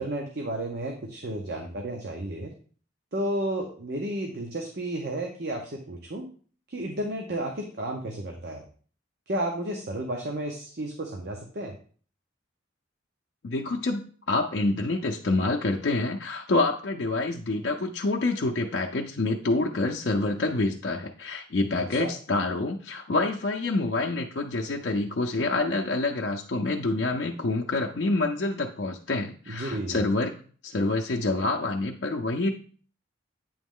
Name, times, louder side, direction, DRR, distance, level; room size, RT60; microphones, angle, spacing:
voice 1, 0.0-2.5 3.1-6.3 6.7-8.6 9.3-11.7 21.9-22.1 29.5-30.0, right 1 dB, 55° right, 2 dB, 0.7 m, -32 dB
voice 2, 13.4-30.3 30.6-32.5, left 2 dB, 60° left, 0 dB, 0.5 m, -27 dB
8.6 x 3.1 x 3.6 m, 0.43 s
head